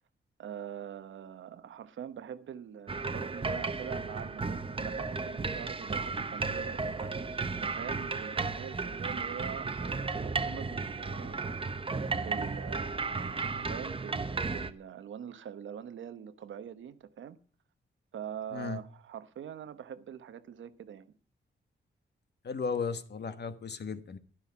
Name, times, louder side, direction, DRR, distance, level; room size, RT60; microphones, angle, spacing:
voice 1, 0.4-11.6 12.2-17.4 18.1-21.1, right 9 dB, 90° right, 1.0 m, -44 dB
sound 1, 2.9-14.7, right 4 dB, 30° right, 0.9 m, -34 dB
voice 2, 22.4-24.2, left 5 dB, 60° left, 1.2 m, -35 dB
11.5 x 10.5 x 5.9 m
cardioid pair, 80°, 19 cm